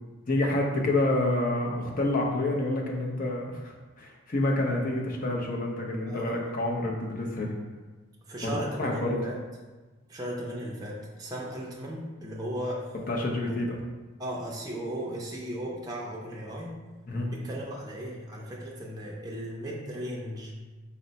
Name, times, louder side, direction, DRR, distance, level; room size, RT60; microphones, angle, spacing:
voice 1, 0.3-7.6 8.4-9.2 13.1-13.8 17.1-17.3, left 1 dB, 45° left, 0 dB, 0.6 m, -28 dB
voice 2, 6.1-6.5 8.3-9.4 10.1-12.9 13.4-13.5 14.2-16.8 17.3-20.5, equal, 20° right, -4 dB, 0.5 m, -36 dB
4.3 x 2.0 x 3.9 m, 1.3 s
head